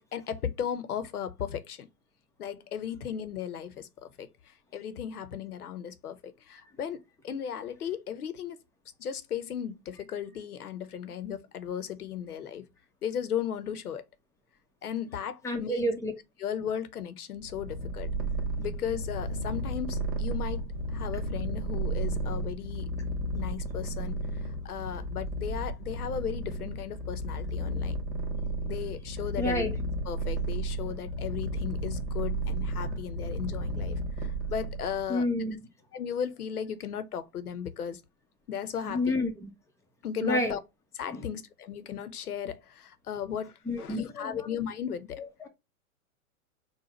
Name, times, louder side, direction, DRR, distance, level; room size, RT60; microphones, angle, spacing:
voice 1, 0.0-1.9 2.4-8.6 9.0-12.7 13.0-14.0 14.8-15.8 16.4-18.1 18.6-23.0 23.3-28.0 28.6-29.6 30.1-35.3 35.9-38.0 38.5-39.1 40.0-40.6 40.9-45.2, left 8 dB, 80° left, 0.9 m, -36 dB
voice 2, 15.4-16.1 29.4-29.7 35.1-35.6 38.8-39.5 40.2-40.5 41.1-41.2 43.7-44.3, left 1 dB, 5° left, 0.9 m, -29 dB
Purr, 17.4-35.1, right 1 dB, 35° right, 1.5 m, -33 dB
4.0 x 2.3 x 4.3 m
hypercardioid pair, 115°, 44 cm